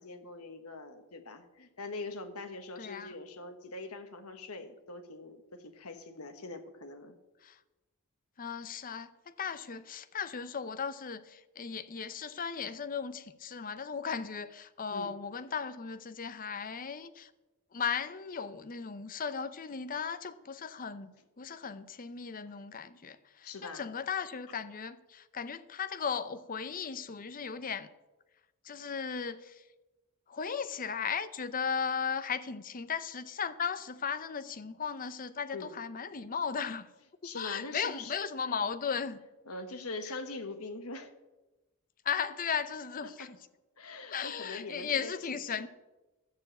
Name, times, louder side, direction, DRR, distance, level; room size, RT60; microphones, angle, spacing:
voice 1, 0.0-7.2 14.9-15.1 22.5-22.6 23.4-23.9 35.5-35.7 37.2-38.2 39.4-41.1 43.0-43.3 43.8-45.6, left 3 dB, 75° left, 1.3 m, -43 dB
voice 2, 2.8-3.1 7.4-7.6 8.4-9.1 9.4-17.3 17.7-27.9 28.6-29.6 30.3-36.9 37.3-39.2 40.1-40.2 42.0-43.4 44.1-45.7, left 6 dB, 40° left, 0.6 m, -36 dB
13.0 x 7.0 x 7.6 m
head